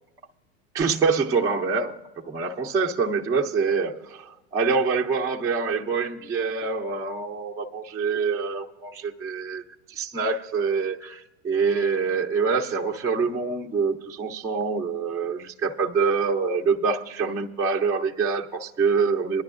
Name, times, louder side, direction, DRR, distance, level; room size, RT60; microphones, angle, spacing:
voice 1, 0.7-9.6 9.9-19.4, right 5 dB, 10° right, 0.4 m, -25 dB
24.0 x 11.0 x 2.4 m
hypercardioid pair, 125°, 45 cm